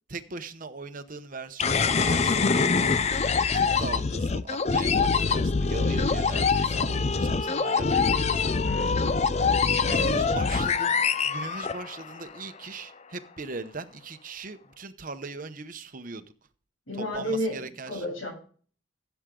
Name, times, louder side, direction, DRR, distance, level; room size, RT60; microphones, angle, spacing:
voice 1, 0.1-3.2 3.5-8.4 9.8-16.3 17.1-18.0, right 3 dB, 40° right, 10 dB, 0.9 m, -39 dB
sound 1, 1.6-12.2, left 5 dB, 30° left, 0.5 m, -24 dB
voice 2, 8.6-9.1 9.8-10.4 16.9-17.6 17.9-18.3, left 1 dB, 75° left, 2 dB, 7.3 m, -32 dB
16.0 x 8.1 x 3.8 m, 0.43 s
head